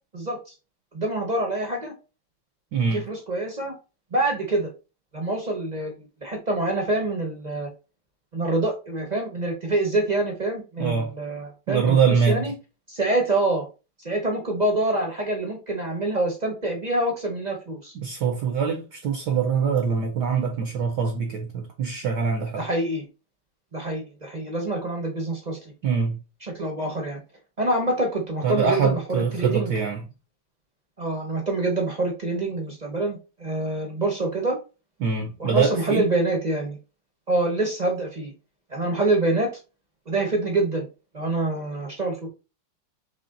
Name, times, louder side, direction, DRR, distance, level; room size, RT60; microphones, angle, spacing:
voice 1, 0.9-1.9 2.9-3.7 4.1-4.7 5.1-7.7 8.3-12.0 12.3-12.5 12.9-13.6 14.0-17.9 22.6-23.0 23.7-25.6 26.5-27.2 27.6-29.7 31.0-34.6 35.4-36.8 37.3-38.3 38.7-39.5 40.1-40.9 41.1-42.3, right 2 dB, 40° right, 0.6 m, -26 dB
voice 2, 2.7-3.0 10.8-11.1 11.7-12.5 17.9-22.6 25.8-26.2 28.4-30.1 35.0-36.1, right 6 dB, 70° right, 1.0 m, -24 dB
4.2 x 3.2 x 3.8 m
omnidirectional pair, 2.4 m